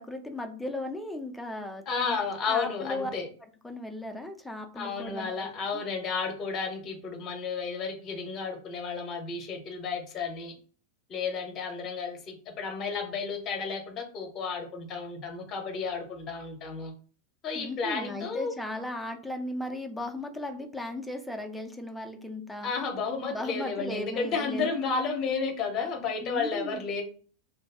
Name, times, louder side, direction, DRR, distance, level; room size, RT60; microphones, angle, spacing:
voice 1, 0.0-2.2 2.5-3.1 3.6-5.8 17.5-22.7 23.3-24.8 26.2-26.8, left 1 dB, 5° left, 4 dB, 0.5 m, -36 dB
voice 2, 1.9-3.3 4.7-10.5 11.1-16.9 17.4-18.5 22.6-27.0, left 5 dB, 30° left, 4 dB, 0.8 m, -32 dB
2.6 x 2.2 x 3.5 m, 0.43 s
figure-of-eight pair, 90°, 0 cm